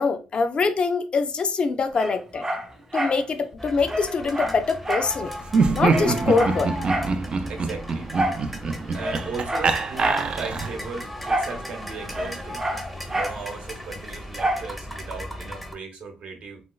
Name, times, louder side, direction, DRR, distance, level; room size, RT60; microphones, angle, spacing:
voice 1, 0.0-2.5 2.9-5.3 5.7-6.7, left 4 dB, 40° left, 0.4 m, -24 dB
Dog, 1.9-3.2 3.5-3.6 3.9-5.2 5.5-5.6 5.9-7.2 8.1-8.5 8.9-10.3 11.2-11.6 11.8-13.4 14.4-14.7 15.2-15.3, right 1 dB, 20° right, 0.9 m, -28 dB
sound 1, 3.6-15.7, left 1 dB, ahead, 0.6 m, -37 dB
Laughter, 5.5-10.9, right 4 dB, 40° right, 0.3 m, -25 dB
voice 2, 7.5-8.1 8.9-12.6 13.1-16.6, right 4 dB, 60° right, 0.9 m, -36 dB
3.1 x 3.0 x 2.3 m
cardioid pair, 120°, 3 cm